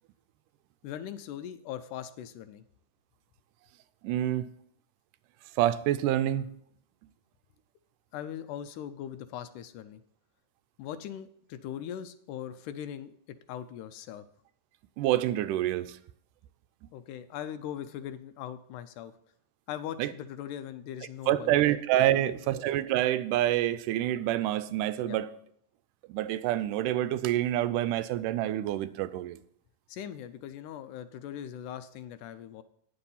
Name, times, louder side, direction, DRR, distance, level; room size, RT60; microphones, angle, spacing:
voice 1, 0.8-2.6 8.1-10.0 10.8-13.2 13.5-14.2 16.9-19.1 19.7-21.6 22.1-22.5 25.0-25.2 29.9-32.6, left 10 dB, 80° left, 2.0 m, -40 dB
voice 2, 4.0-4.5 5.6-6.5 15.0-16.0 20.0-20.1 21.3-25.3 26.1-29.4, right 13 dB, 85° right, 2.1 m, -27 dB
9.7 x 6.8 x 5.5 m
omnidirectional pair, 3.7 m